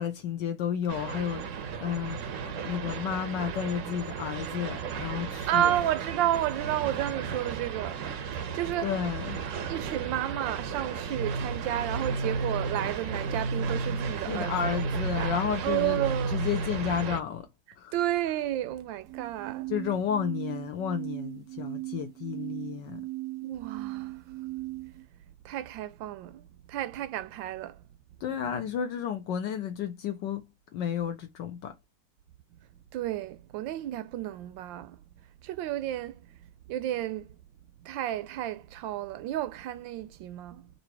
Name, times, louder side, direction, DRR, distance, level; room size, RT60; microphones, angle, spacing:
voice 1, 0.0-5.7 8.8-9.4 14.3-16.0 16.3-17.5 17.8-17.9 19.7-23.0 28.2-30.5 30.7-31.7, left 8 dB, 75° left, 1.3 m, -32 dB
sound 1, 0.9-17.2, right 7 dB, 60° right, 0.8 m, -36 dB
voice 2, 5.3-8.9 9.7-15.3 15.6-16.4 17.9-19.7 23.4-24.5 25.4-27.8 32.9-35.0 35.4-36.4 36.7-37.4 37.8-40.7, right 13 dB, 80° right, 1.3 m, -32 dB
sound 2, 11.1-17.0 19.1-25.1, right 4 dB, 25° right, 0.7 m, -35 dB
3.9 x 2.8 x 4.5 m
omnidirectional pair, 2.0 m